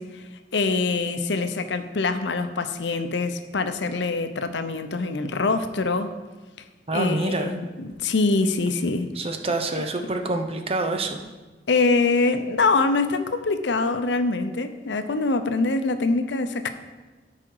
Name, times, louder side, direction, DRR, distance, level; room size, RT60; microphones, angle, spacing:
voice 1, 0.0-6.1 6.9-9.1 9.7-9.9 11.7-16.7, left 3 dB, 80° left, 9 dB, 0.7 m, -24 dB
voice 2, 6.9-7.5 9.2-11.2, right 2 dB, 35° right, 6 dB, 0.7 m, -26 dB
12.5 x 4.9 x 4.7 m, 1.2 s
head